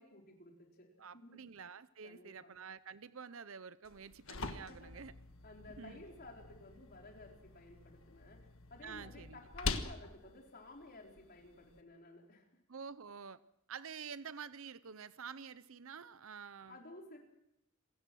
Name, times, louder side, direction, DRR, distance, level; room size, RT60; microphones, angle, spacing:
voice 1, 0.0-0.9 1.1-1.4 2.0-2.5 4.7-5.0 5.4-12.5 16.7-17.2, left 2 dB, 45° left, 0 dB, 4.6 m, -54 dB
voice 2, 1.0-5.1 5.8-6.0 8.8-9.4 12.7-13.4 13.7-16.8, right 6 dB, 70° right, 16 dB, 0.7 m, -49 dB
sound 1, 3.8-11.8, left 3 dB, 70° left, 1.6 m, -45 dB
27.0 x 16.0 x 6.3 m, 0.80 s
head